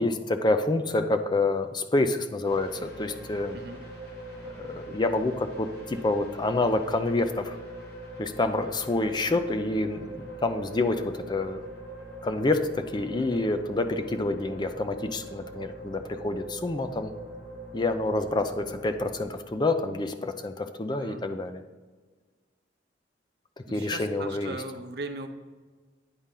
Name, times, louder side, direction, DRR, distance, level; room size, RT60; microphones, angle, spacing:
voice 1, 0.0-3.6 4.7-7.6 8.2-11.6 12.2-17.1 17.7-21.6 23.7-24.6, left 2 dB, 25° left, 8 dB, 0.4 m, -27 dB
sound 1, 2.4-19.2, right 1 dB, 60° left, 1.9 m, -42 dB
voice 2, 20.9-21.2 23.7-25.3, right 3 dB, 60° right, 6 dB, 0.7 m, -38 dB
9.7 x 4.2 x 3.8 m, 1.4 s
head